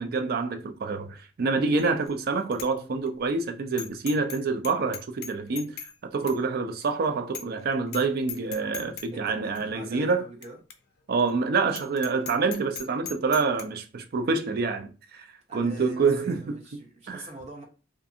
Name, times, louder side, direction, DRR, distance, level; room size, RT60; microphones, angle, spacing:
voice 1, 0.0-5.8 6.0-10.2 11.1-16.8 17.1-17.2, right 4 dB, 50° right, 0.4 m, -27 dB
Bicycle bell, 1.8-2.1 2.5-2.7 3.1-3.2 3.8-4.4 4.6-5.9 6.3-6.4 6.8-6.9 7.3-7.6 7.9-8.0 8.3-9.1 9.5-9.6 10.4-10.5 10.7-10.8 11.2-11.3 11.7-13.6, left 7 dB, 55° left, 0.4 m, -38 dB
voice 2, 9.1-10.6 15.5-17.6, right 2 dB, 35° right, 0.8 m, -44 dB
2.5 x 2.4 x 2.6 m
head